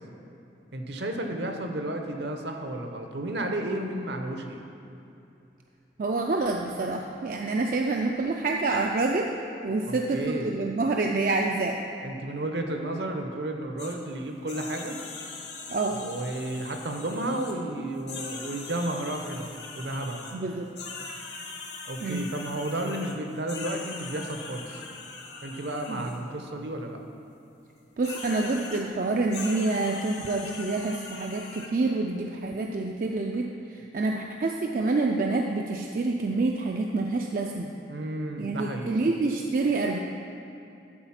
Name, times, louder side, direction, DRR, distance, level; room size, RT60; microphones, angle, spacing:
voice 1, 0.7-4.6 9.8-10.5 12.0-15.0 15.9-20.2 21.9-24.8 25.4-27.0 37.9-39.0, right 1 dB, 65° right, 4 dB, 0.8 m, -32 dB
voice 2, 6.0-9.3 9.6-11.8 15.7-16.0 20.3-20.7 22.0-22.3 25.9-26.1 28.0-33.5 33.9-37.7 38.4-40.0, right 3 dB, 45° right, 1 dB, 0.4 m, -27 dB
sound 1, 13.8-14.0 14.5-17.6 18.0-20.4 20.8-26.2 28.0-28.8 29.3-31.7, left 4 dB, 65° left, 1.0 m, -41 dB
12.0 x 4.1 x 5.8 m, 2.8 s
head